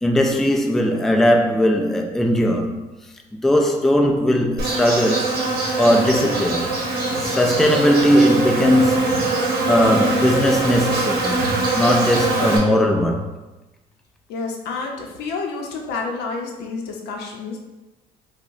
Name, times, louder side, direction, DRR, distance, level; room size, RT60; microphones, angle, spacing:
voice 1, 0.0-2.8 3.4-5.3 5.8-6.7 7.2-9.2 9.7-11.4 11.7-13.3, equal, ahead, 0.3 m, -18 dB
Insect, 4.6-12.6, right 3 dB, 65° right, 0.8 m, -22 dB
voice 2, 14.3-17.6, left 4 dB, 85° left, 0.6 m, -29 dB
4.6 x 2.1 x 2.6 m
cardioid pair, 110°, 17 cm